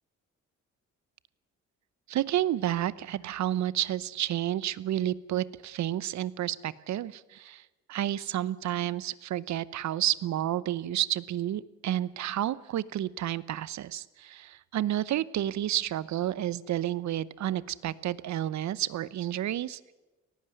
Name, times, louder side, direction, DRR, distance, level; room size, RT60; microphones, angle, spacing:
voice 1, 2.1-7.6 7.9-19.8, right 12 dB, 65° right, 19 dB, 0.8 m, -30 dB
19.0 x 15.0 x 9.4 m, 1.1 s
cardioid pair, 90°, 30 cm